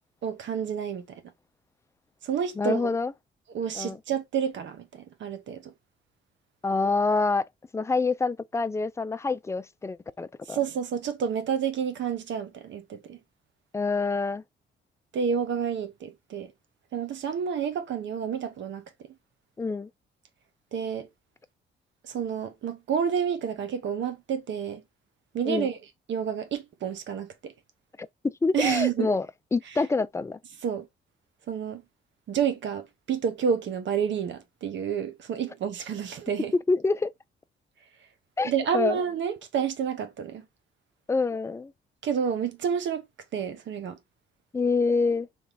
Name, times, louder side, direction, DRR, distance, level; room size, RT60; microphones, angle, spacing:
voice 1, 0.2-1.2 2.2-3.0 3.5-5.7 10.5-13.2 15.1-16.5 16.9-18.8 20.7-21.1 22.1-24.8 25.3-25.8 26.1-27.5 28.5-29.1 30.6-30.9 31.5-31.8 32.3-36.5 38.4-40.4 42.0-43.1 43.3-44.0, right 7 dB, 70° right, 1.0 m, -29 dB
voice 2, 2.6-3.1 3.7-4.0 6.6-7.4 7.7-10.6 13.7-14.4 19.6-19.9 25.5-25.7 28.0-29.3 29.5-30.4 36.7-37.1 38.4-39.0 41.1-41.7 44.5-45.3, left 3 dB, 15° left, 0.4 m, -26 dB
3.5 x 3.1 x 4.0 m
cardioid pair, 90°, 20 cm